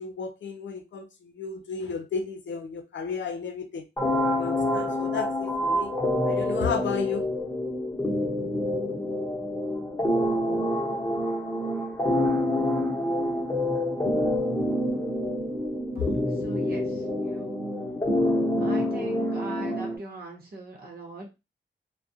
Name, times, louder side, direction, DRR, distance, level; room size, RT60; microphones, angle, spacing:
voice 1, 0.0-3.9 4.4-5.9 6.3-7.3, left 5 dB, 80° left, 0.6 m, -33 dB
sound 1, 4.0-20.0, left 1 dB, 10° left, 0.9 m, -27 dB
voice 2, 16.4-17.6 18.6-21.3, right 2 dB, 55° right, 0.9 m, -41 dB
2.4 x 2.2 x 2.7 m
wide cardioid pair, 115°, 19 cm